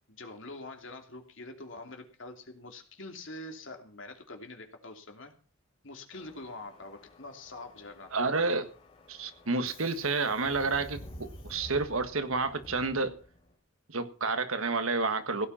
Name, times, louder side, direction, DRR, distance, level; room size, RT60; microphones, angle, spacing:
voice 1, 0.0-5.3 5.8-8.4, left 2 dB, 65° left, 2.9 m, -45 dB
Subway metro underground, 6.1-13.5, left 1 dB, 25° left, 4.2 m, -51 dB
voice 2, 8.1-8.7 9.1-13.2 13.9-15.5, right 3 dB, 85° right, 1.6 m, -30 dB
16.5 x 8.9 x 5.7 m
head